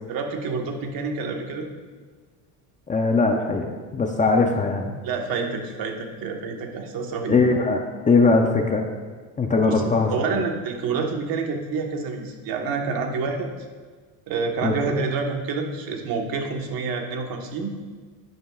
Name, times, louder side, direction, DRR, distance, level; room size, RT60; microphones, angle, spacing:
voice 1, 0.1-1.7 5.0-7.4 9.6-9.8 10.1-13.5 14.3-17.7, right 4 dB, 55° right, 3 dB, 1.3 m, -28 dB
voice 2, 2.9-4.9 7.3-7.8 8.1-8.8 9.4-10.4 14.6-15.0, left 3 dB, 20° left, 3 dB, 0.5 m, -21 dB
10.5 x 9.7 x 2.4 m, 1.4 s
cardioid pair, 130°, 43 cm